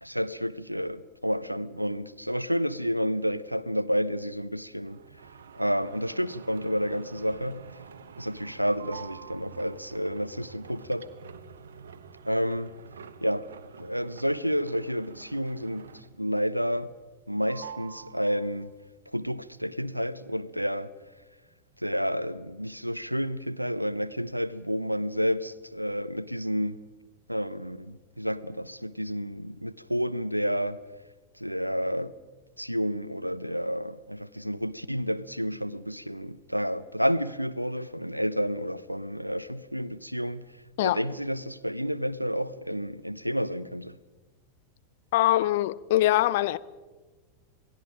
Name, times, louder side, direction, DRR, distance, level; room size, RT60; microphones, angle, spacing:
voice 1, 0.0-5.0 5.5-7.6 8.2-11.1 12.3-12.7 13.2-13.4 13.8-15.9 16.2-16.9 17.3-18.7 19.1-20.9 21.8-26.8 27.3-30.8 31.4-32.1 32.6-40.5 40.8-43.9, equal, 90° right, 0.7 m, -30 dB
sound 1, 4.9-16.3 16.7-17.2 17.5-18.8, right 6 dB, 65° right, 1.2 m, -47 dB
voice 2, 45.1-46.6, left 15 dB, 50° left, 0.7 m, -23 dB
27.5 x 19.0 x 5.0 m
figure-of-eight pair, 90°, 0 cm